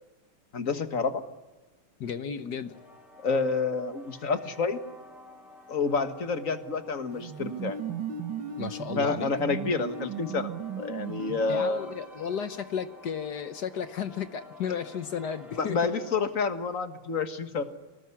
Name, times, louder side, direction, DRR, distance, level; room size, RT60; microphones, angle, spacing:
voice 1, 0.5-1.2 3.2-4.8 5.7-7.8 9.0-10.5 10.8-11.9 15.5-17.6, left 4 dB, 40° left, 9 dB, 1.8 m, -28 dB
voice 2, 2.0-2.8 8.6-9.3 11.5-15.9, left 7 dB, 60° left, 11 dB, 1.4 m, -34 dB
sound 1, 2.7-16.2, left 1 dB, ahead, 4.0 m, -51 dB
sound 2, 7.1-12.0, right 8 dB, 65° right, 2.3 m, -36 dB
25.0 x 19.5 x 9.8 m, 1.2 s
omnidirectional pair, 2.3 m